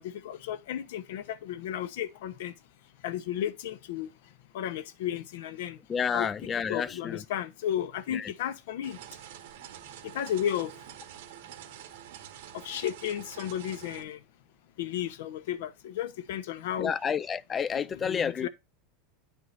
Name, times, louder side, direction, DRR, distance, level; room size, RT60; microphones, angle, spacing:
voice 1, 0.0-2.5 3.0-4.1 4.5-5.8 6.1-6.3 6.7-9.0 10.1-10.7 12.5-14.2 14.8-16.9 18.0-18.5, left 10 dB, 75° left, 0.8 m, -33 dB
voice 2, 5.9-7.2 8.1-8.3 16.8-18.5, left 7 dB, 20° left, 0.3 m, -30 dB
sound 1, 8.8-14.0, right 11 dB, 80° right, 1.2 m, -47 dB
9.3 x 4.5 x 4.0 m
supercardioid pair, 150°, 0 cm